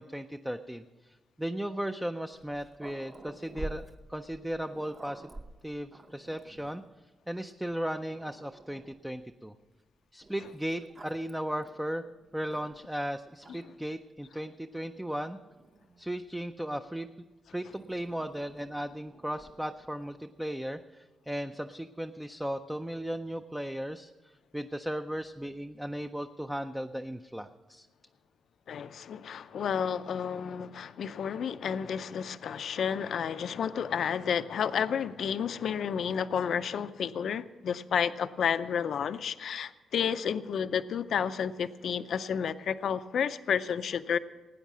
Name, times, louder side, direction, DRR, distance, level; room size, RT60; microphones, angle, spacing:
voice 1, 0.0-3.8 4.1-5.3 5.6-6.8 7.3-9.5 10.1-12.1 12.3-15.4 16.0-17.1 17.5-27.9, right 1 dB, 5° right, 7 dB, 0.4 m, -36 dB
Growling, 2.3-6.9 7.6-7.7 8.1-9.1 10.2-13.0 13.4-13.9 14.8-16.6 17.7-20.2, right 2 dB, 25° right, 0.8 m, -49 dB
voice 2, 28.7-44.2, left 7 dB, 60° left, 12 dB, 0.5 m, -31 dB
18.5 x 9.3 x 6.1 m, 1.2 s
wide cardioid pair, 140°, 0 cm